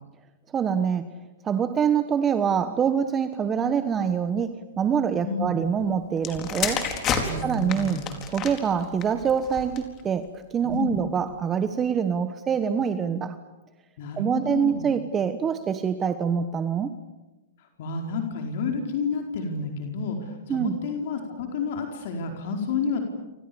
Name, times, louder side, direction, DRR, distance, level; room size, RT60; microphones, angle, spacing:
voice 1, 0.5-1.1 1.4-6.9 7.4-8.0 8.3-13.4 14.2-16.9 20.5-20.8, right 7 dB, 20° right, 11 dB, 1.2 m, -25 dB
voice 2, 5.2-5.6 7.2-8.1 10.6-11.0 14.0-14.9 17.8-23.0, left 4 dB, 55° left, 3 dB, 4.7 m, -30 dB
sound 1, 6.2-10.0 10.8-11.1, left 6 dB, 30° left, 4.4 m, -31 dB
29.5 x 26.5 x 7.1 m, 1.1 s
hypercardioid pair, 135°, 0 cm